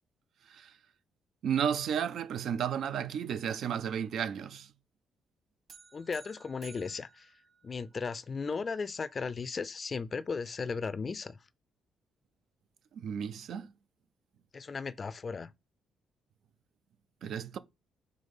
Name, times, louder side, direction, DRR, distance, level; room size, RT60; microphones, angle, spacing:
voice 1, 1.4-4.7 13.0-13.7 17.2-17.6, right 8 dB, 70° right, 0.5 m, -33 dB
sound 1, 5.7-8.2, right 6 dB, 50° right, 1.9 m, -55 dB
voice 2, 5.9-7.3 7.6-11.4 14.5-15.5, left 5 dB, 35° left, 0.4 m, -36 dB
5.4 x 3.3 x 5.4 m
cardioid pair, 90°, 0 cm